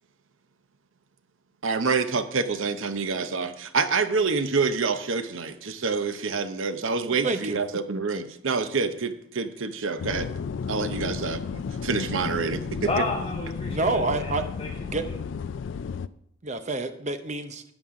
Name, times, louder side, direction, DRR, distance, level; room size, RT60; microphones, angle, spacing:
voice 1, 1.6-10.3 10.7-13.0, right 4 dB, 70° right, 10 dB, 0.7 m, -27 dB
voice 2, 7.2-7.6 13.7-14.4 14.9-15.1 16.4-17.6, right 3 dB, 35° right, 9 dB, 0.7 m, -28 dB
sound 1, 10.0-16.1, left 5 dB, 65° left, 0.3 m, -33 dB
voice 3, 12.8-15.1, left 2 dB, 30° left, -3 dB, 2.5 m, -32 dB
13.0 x 9.0 x 3.7 m, 0.72 s
head